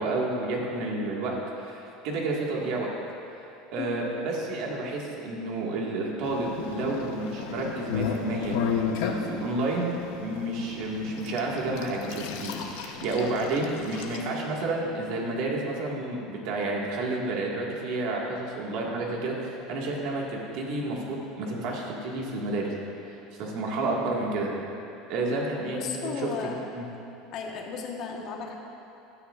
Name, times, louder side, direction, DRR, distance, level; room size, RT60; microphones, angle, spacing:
voice 1, 0.0-2.9 3.3-3.4 3.7-22.7 23.1-24.5 25.1-26.3 26.7-26.9, right 2 dB, 55° right, -2 dB, 1.8 m, -30 dB
sound 1, 6.2-14.2, left 7 dB, 75° left, 0.9 m, -34 dB
voice 2, 25.7-26.6 27.3-28.5, left 6 dB, 45° left, 0 dB, 1.3 m, -35 dB
16.0 x 10.0 x 2.5 m, 2.9 s
cardioid pair, 155°, 0 cm